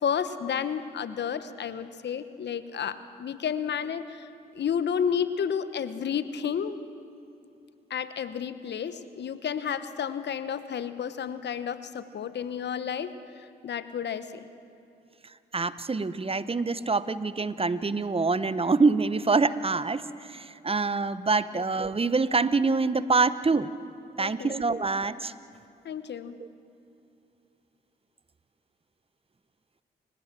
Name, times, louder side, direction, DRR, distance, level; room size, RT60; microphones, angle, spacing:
voice 1, 0.0-4.3 4.5-6.8 7.9-13.1 13.6-14.5 21.5-21.6 24.2-24.6 25.8-26.4, left 7 dB, 60° left, 13 dB, 1.1 m, -31 dB
voice 2, 15.5-23.7 24.2-25.3 26.4-26.5, right 4 dB, 30° right, 15 dB, 1.0 m, -25 dB
30.0 x 16.5 x 7.6 m, 2.8 s
hypercardioid pair, 45°, 20 cm